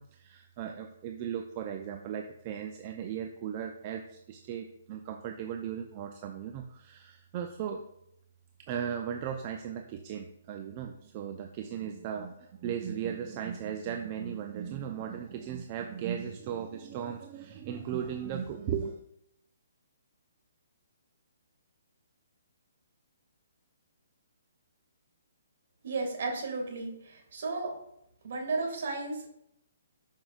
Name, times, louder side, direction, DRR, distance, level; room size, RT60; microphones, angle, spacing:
voice 1, 0.0-7.8 8.6-19.0, right 8 dB, 35° right, 4 dB, 0.6 m, -37 dB
voice 2, 25.8-27.7 28.2-29.3, right 3 dB, 60° right, 1 dB, 2.1 m, -34 dB
11.5 x 5.5 x 2.4 m, 0.77 s
hypercardioid pair, 140°, 0 cm